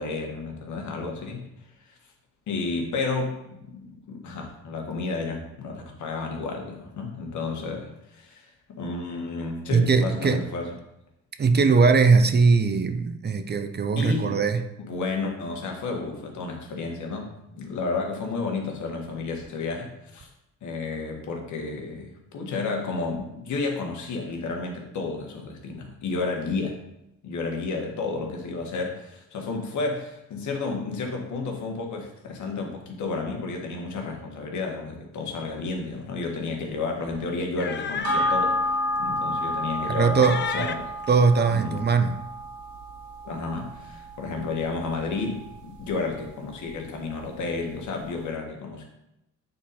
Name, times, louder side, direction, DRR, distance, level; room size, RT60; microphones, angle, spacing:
voice 1, 0.0-1.5 1.9-2.0 2.5-8.5 8.8-10.7 14.0-14.4 14.9-20.3 20.6-26.8 27.2-38.6 39.0-40.9 41.5-42.1 43.2-48.8, left 3 dB, 70° left, 1 dB, 1.6 m, -31 dB
voice 2, 9.7-10.5 11.4-14.6 39.9-40.4 41.1-42.2, right 4 dB, 35° right, 8 dB, 0.6 m, -20 dB
sound 1, 35.3-35.5 35.8-36.0 37.1-38.5 39.0-39.1 39.6-40.0 40.2-41.8, left 7 dB, 35° left, 0.5 m, -34 dB
sound 2, 38.0-46.8 47.1-47.2, left 1 dB, 70° right, 2.0 m, -31 dB
8.5 x 4.0 x 4.3 m, 0.86 s
cardioid pair, 90°, 30 cm